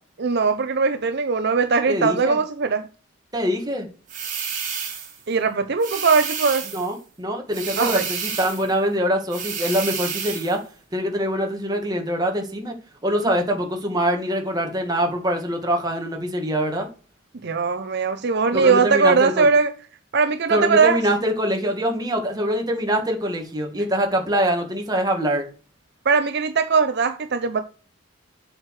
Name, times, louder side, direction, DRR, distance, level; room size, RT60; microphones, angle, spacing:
voice 1, 0.2-2.9 5.3-6.7 7.8-8.0 17.4-19.7 20.1-21.0 26.1-27.6, right 5 dB, 55° right, 0.6 m, -20 dB
voice 2, 1.9-2.4 3.3-3.9 6.7-10.6 10.9-12.7 13.0-16.9 18.5-19.5 20.5-25.5, equal, 20° right, 1.8 m, -24 dB
sound 1, 4.1-5.2 5.8-6.9 7.5-8.7 9.3-10.6, right 6 dB, 40° right, 2.8 m, -30 dB
7.7 x 6.4 x 4.8 m
head